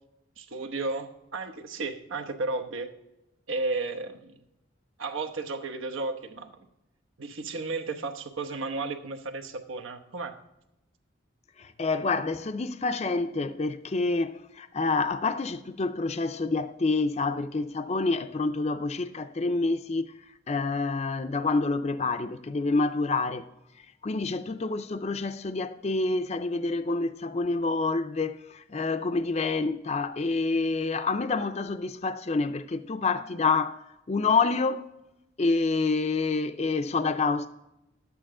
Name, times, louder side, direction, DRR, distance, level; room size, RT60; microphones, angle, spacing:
voice 1, 0.4-2.9 3.5-4.4 5.0-6.6 7.2-10.4, right 3 dB, 85° right, 1.0 m, -33 dB
voice 2, 11.6-20.1 20.5-23.5 24.0-34.9 35.4-37.5, left 3 dB, 35° left, 0.4 m, -27 dB
12.0 x 8.7 x 3.7 m
head